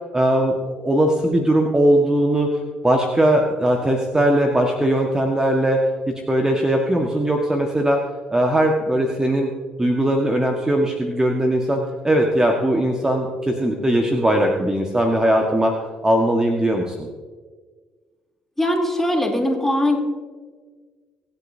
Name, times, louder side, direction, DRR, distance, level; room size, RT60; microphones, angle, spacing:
voice 1, 0.1-2.6 2.8-8.0 8.3-9.5 9.8-15.7 16.0-17.1, right 1 dB, 15° right, 2 dB, 1.5 m, -19 dB
voice 2, 18.6-20.0, left 1 dB, 10° left, 0 dB, 3.2 m, -20 dB
24.5 x 8.4 x 2.8 m, 1.5 s
hypercardioid pair, 55°, 4 cm